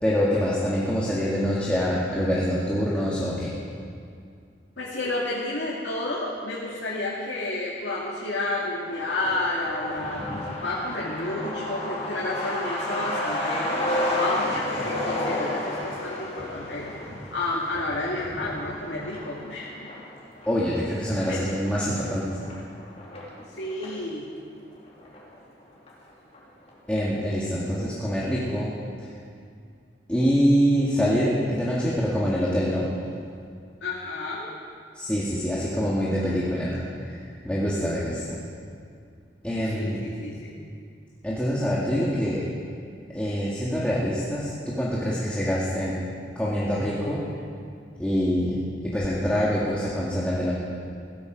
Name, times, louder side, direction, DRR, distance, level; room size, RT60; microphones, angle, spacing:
voice 1, 0.0-3.5 20.5-22.3 26.9-28.7 30.1-32.9 34.9-37.1 37.4-38.4 39.4-40.0 41.2-42.4 43.1-46.0 46.4-47.2 48.0-50.5, equal, 5° left, -7 dB, 1.9 m, -25 dB
voice 2, 4.8-16.9 17.3-19.9 21.3-21.4 23.5-24.3 33.8-34.5 39.7-40.5, left 2 dB, 80° left, -6 dB, 2.3 m, -31 dB
Truck, 8.8-24.0 24.4-24.5 24.7-25.6 25.9-26.0 26.3-26.7, left 1 dB, 35° left, 3.5 m, -32 dB
16.5 x 14.0 x 5.2 m, 2.3 s
head